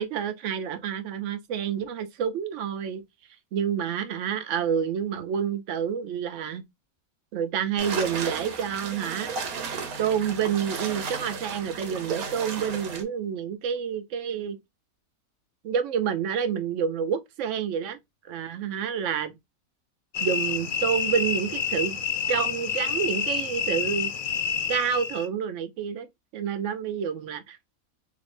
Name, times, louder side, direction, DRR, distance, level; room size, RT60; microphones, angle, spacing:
voice 1, 0.0-3.0 3.5-6.6 7.3-9.3 10.0-14.6 15.6-18.0 18.3-19.3 20.2-22.0 22.3-24.1 24.7-26.1 26.3-27.6, right 8 dB, 65° right, 0.8 m, -28 dB
sound 1, 7.8-13.0, right 5 dB, 90° right, 1.3 m, -34 dB
sound 2, 20.1-25.3, left 8 dB, 85° left, 0.4 m, -28 dB
3.4 x 2.8 x 2.5 m
omnidirectional pair, 1.5 m